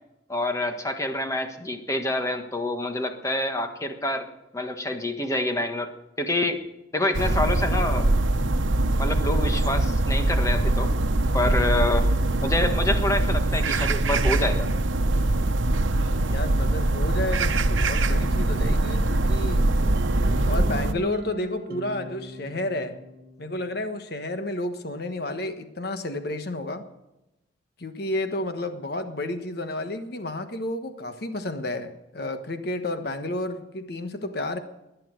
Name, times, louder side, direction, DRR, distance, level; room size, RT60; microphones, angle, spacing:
voice 1, 0.3-4.3 4.5-5.9 6.2-6.6 6.9-8.1 9.0-10.9 11.3-12.1 12.4-14.7, left 1 dB, 15° left, 6 dB, 1.5 m, -27 dB
sound 1, 7.1-20.9, right 2 dB, 85° right, 1.0 m, -23 dB
voice 2, 16.3-19.7 20.4-23.0 23.4-26.8 27.8-34.6, left 1 dB, 55° left, 8 dB, 1.3 m, -31 dB
sound 2, 19.8-23.8, right 1 dB, 50° right, 1.7 m, -38 dB
19.5 x 10.5 x 6.5 m, 0.94 s
head